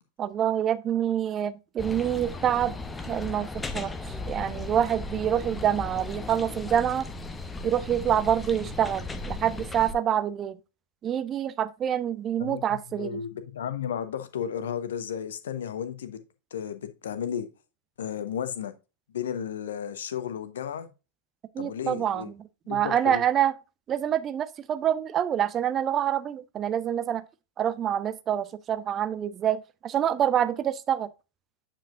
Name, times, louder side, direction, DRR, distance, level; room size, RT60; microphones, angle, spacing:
voice 1, 0.2-2.8 3.1-3.9 4.3-7.1 7.6-10.6 11.0-13.2 21.5-23.5 23.9-27.2 27.6-31.1, right 10 dB, 25° right, 0.6 m, -26 dB
sound 1, 1.8-9.9, left 3 dB, 15° left, 0.8 m, -36 dB
voice 2, 12.4-16.2 16.5-17.5 18.0-18.7 19.1-20.9 21.6-22.3 22.7-23.2, left 8 dB, 60° left, 0.9 m, -33 dB
8.7 x 5.3 x 2.5 m
figure-of-eight pair, 90°, 0 cm